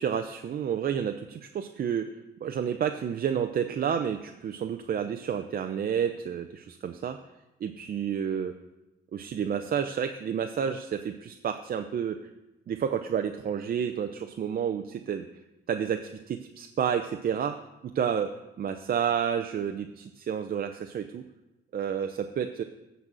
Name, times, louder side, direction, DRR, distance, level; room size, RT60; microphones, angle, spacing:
voice 1, 0.0-2.1 2.4-7.2 7.6-8.5 9.1-12.2 12.7-15.3 15.7-17.6 17.8-21.2 21.7-22.6, right 8 dB, 50° right, 6 dB, 0.6 m, -30 dB
12.0 x 4.1 x 7.6 m, 0.97 s
cardioid pair, 90°, 20 cm